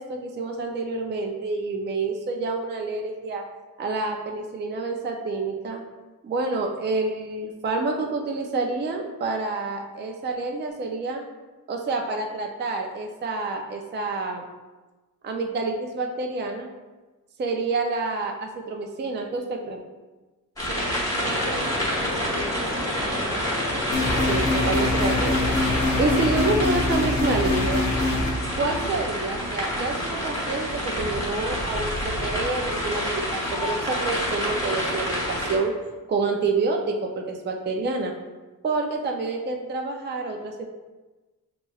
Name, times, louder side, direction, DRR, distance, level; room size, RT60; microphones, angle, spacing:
voice 1, 0.0-3.4 3.8-5.8 6.2-11.2 11.7-14.4 15.2-16.7 17.4-19.8 24.2-25.5 26.0-27.9 28.6-35.8 36.1-38.1 38.6-40.7, right 3 dB, 30° right, 2 dB, 0.4 m, -28 dB
sound 1, 20.6-35.6, equal, 10° left, 1.0 m, -28 dB
voice 2, 20.7-23.4, right 4 dB, 70° right, 2 dB, 0.7 m, -38 dB
sound 2, 21.2-26.3, left 1 dB, 10° right, 1.4 m, -32 dB
sound 3, 23.9-28.3, left 2 dB, 50° left, 0.7 m, -24 dB
6.9 x 2.9 x 2.3 m, 1.2 s
wide cardioid pair, 135°, 37 cm